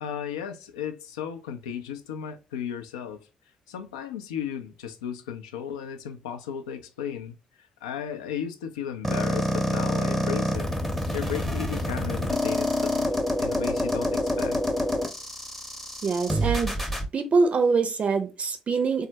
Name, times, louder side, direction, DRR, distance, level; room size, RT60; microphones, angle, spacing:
voice 1, 0.0-3.3 3.7-7.4 7.8-10.7 11.1-13.1 13.4-14.6, left 8 dB, 75° left, 0.3 m, -35 dB
sound 1, 9.0-17.0, equal, 5° left, 0.6 m, -27 dB
voice 2, 16.0-16.7 17.1-19.1, right 4 dB, 40° right, 0.5 m, -24 dB
3.3 x 2.1 x 2.6 m
figure-of-eight pair, 40°, 3 cm